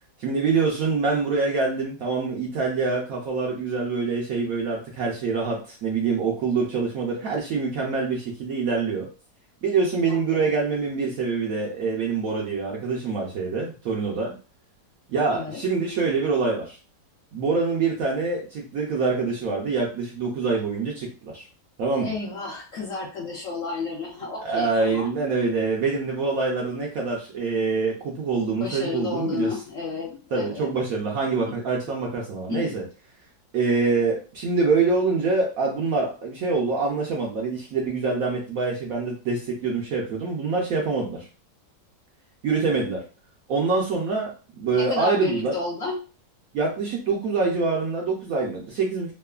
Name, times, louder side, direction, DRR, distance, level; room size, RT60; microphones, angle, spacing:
voice 1, 0.2-9.1 9.6-14.3 15.1-16.8 17.3-21.5 21.8-22.1 24.4-29.5 30.3-32.8 33.5-41.3 42.4-43.0 43.5-45.5 46.5-49.1, right 4 dB, 70° right, -2 dB, 0.8 m, -25 dB
voice 2, 10.1-10.5 15.3-15.6 21.9-25.1 28.5-30.7 32.5-32.8 44.7-46.0, left 3 dB, 65° left, -3 dB, 0.8 m, -31 dB
3.0 x 2.1 x 2.3 m, 0.35 s
omnidirectional pair, 1.9 m